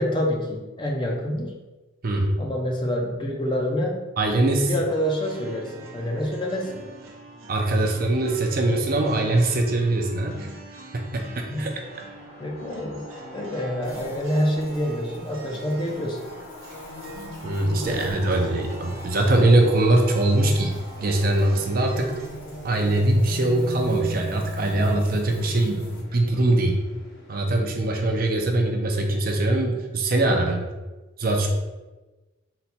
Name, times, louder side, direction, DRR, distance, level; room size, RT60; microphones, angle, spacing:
voice 1, 0.0-1.6 2.4-4.1 4.7-6.8 11.5-11.8 12.4-13.1 13.3-16.3 17.7-18.4, equal, 20° left, 0 dB, 0.4 m, -27 dB
voice 2, 4.2-4.7 7.5-10.5 11.4-11.7 17.4-22.1 22.6-26.8 27.3-30.7 31.2-31.5, right 2 dB, 45° right, 2 dB, 0.5 m, -22 dB
Acoustic Guitar B flat Loop, 4.8-22.3, right 2 dB, 85° right, 0.7 m, -44 dB
sound 1, 11.5-27.3, left 1 dB, 55° left, 0.9 m, -45 dB
sound 2, 13.8-26.0, left 2 dB, 80° left, 1.3 m, -40 dB
4.0 x 2.2 x 4.2 m, 1.2 s
head